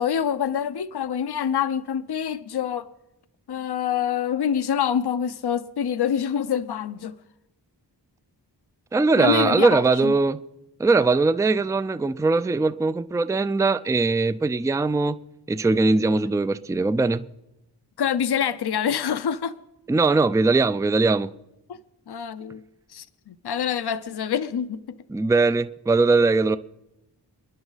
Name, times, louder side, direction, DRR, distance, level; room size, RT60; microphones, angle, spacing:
voice 1, 0.0-2.9 3.5-7.1 9.2-10.1 18.0-19.5 21.7-21.8 22.1-22.6 22.9-24.8, left 8 dB, 65° left, 0.7 m, -26 dB
voice 2, 8.9-10.4 10.8-15.2 15.5-17.3 19.9-21.3 25.1-26.6, right 3 dB, 10° right, 0.4 m, -21 dB
27.0 x 10.5 x 4.0 m
wide cardioid pair, 55°, 43 cm